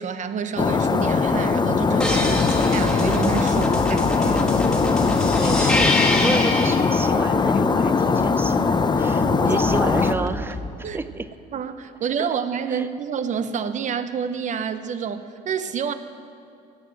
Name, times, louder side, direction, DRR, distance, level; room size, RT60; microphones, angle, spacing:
voice 1, 0.0-4.6 9.2-9.6 10.8-11.0 11.5-15.9, right 7 dB, 45° right, 11 dB, 0.7 m, -29 dB
sound 1, 0.6-10.1, left 4 dB, 25° left, 0.7 m, -20 dB
sound 2, 2.0-6.8 9.6-10.7, left 1 dB, 5° left, 1.6 m, -26 dB
voice 2, 5.4-11.3 12.7-12.9, right 3 dB, 15° right, 13 dB, 0.5 m, -31 dB
17.0 x 6.9 x 7.6 m, 2.5 s
cardioid pair, 110°, 17 cm